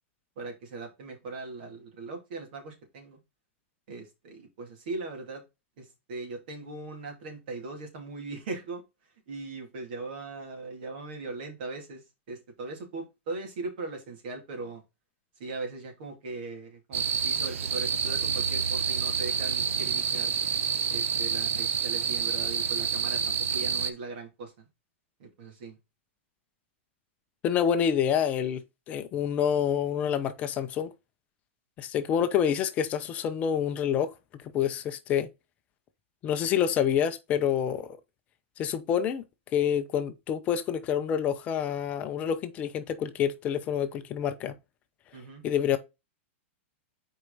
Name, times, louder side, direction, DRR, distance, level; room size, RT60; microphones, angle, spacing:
voice 1, 0.4-3.2 3.9-5.4 5.8-8.8 9.3-14.8 15.4-20.3 20.9-24.6 25.2-25.8 45.1-45.4, right 3 dB, 50° right, 2.8 m, -39 dB
sound 1, 16.9-23.9, right 7 dB, 90° right, 0.8 m, -28 dB
voice 2, 27.4-28.6 28.9-30.9 31.8-34.1 34.5-35.3 36.2-38.0 38.6-39.2 39.5-44.5 45.4-45.8, left 8 dB, 20° left, 0.6 m, -27 dB
6.2 x 4.6 x 3.9 m
supercardioid pair, 170°, 7 cm